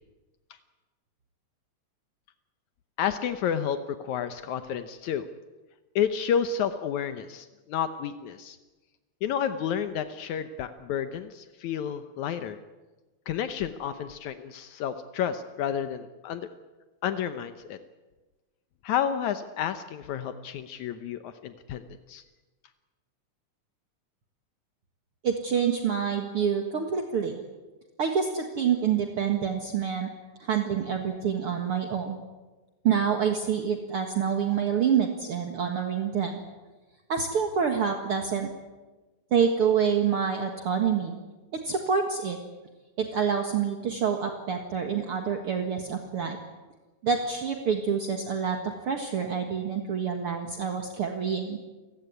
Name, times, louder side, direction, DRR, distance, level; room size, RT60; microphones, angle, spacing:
voice 1, 3.0-5.3 6.0-8.6 9.2-12.6 13.3-16.5 17.0-17.8 18.8-22.2, left 8 dB, 75° left, 9 dB, 2.3 m, -30 dB
voice 2, 25.2-27.4 28.0-30.1 30.4-32.2 32.8-36.4 37.1-38.5 39.3-41.1 41.5-42.4 43.0-46.4 47.0-48.6 48.8-51.6, right 7 dB, 50° right, 4 dB, 2.4 m, -27 dB
29.5 x 17.5 x 9.7 m, 1.2 s
omnidirectional pair, 3.4 m